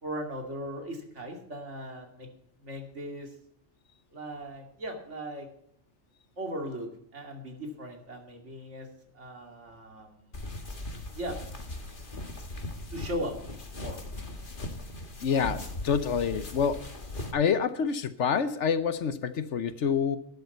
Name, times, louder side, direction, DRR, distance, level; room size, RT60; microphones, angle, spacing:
voice 1, 0.0-2.3 2.6-3.3 4.1-5.5 6.4-8.9 9.1-10.5 11.1-11.4 12.9-13.3 13.8-14.0, equal, 65° right, 3 dB, 2.9 m, -38 dB
sound 1, 10.3-17.3, left 1 dB, 40° left, 1.9 m, -39 dB
voice 2, 15.2-16.8 17.3-20.2, left 6 dB, 65° left, 12 dB, 1.2 m, -27 dB
12.5 x 11.0 x 5.4 m, 0.70 s
omnidirectional pair, 1.3 m